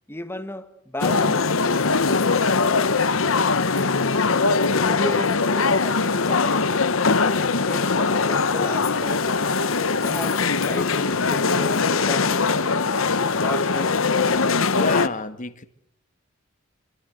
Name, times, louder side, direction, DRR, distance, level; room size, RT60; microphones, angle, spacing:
voice 1, 0.1-1.4 4.7-6.9 7.4-9.3 9.9-12.9 13.4-14.1, left 1 dB, 10° left, 1.8 m, -34 dB
sound 1, 1.0-15.1, left 4 dB, 75° left, 1.1 m, -21 dB
voice 2, 14.4-15.7, left 3 dB, 40° left, 1.7 m, -30 dB
27.0 x 24.5 x 7.8 m
head